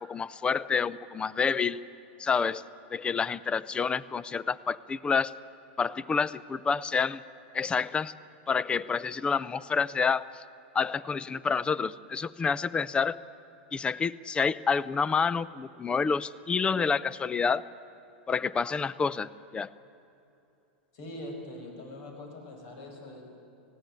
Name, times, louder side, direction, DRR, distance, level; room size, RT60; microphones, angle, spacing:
voice 1, 0.0-1.8 2.2-2.6 2.9-5.3 5.8-7.2 7.5-8.1 8.5-10.4 10.7-13.2 13.7-17.6 18.3-19.7, left 5 dB, 15° left, 19 dB, 0.5 m, -28 dB
voice 2, 20.9-23.3, left 1 dB, 60° left, 3 dB, 5.4 m, -42 dB
19.0 x 16.0 x 9.6 m, 2.8 s
supercardioid pair, 120°, 6 cm